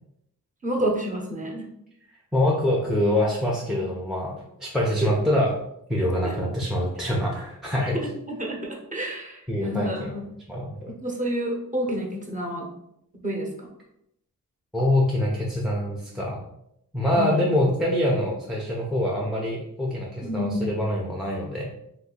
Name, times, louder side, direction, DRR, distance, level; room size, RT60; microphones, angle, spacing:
voice 1, 0.6-1.7 5.0-5.1 6.2-6.4 8.3-10.2 10.9-12.7 13.2-13.7 17.1-17.5 20.2-20.6, equal, 25° right, -2 dB, 0.8 m, -29 dB
voice 2, 2.3-4.3 4.6-5.5 5.9-8.0 9.5-10.1 10.5-10.9 14.7-16.4 16.9-21.7, left 1 dB, ahead, -4 dB, 0.5 m, -25 dB
2.6 x 2.5 x 3.7 m, 0.80 s
cardioid pair, 100°, 34 cm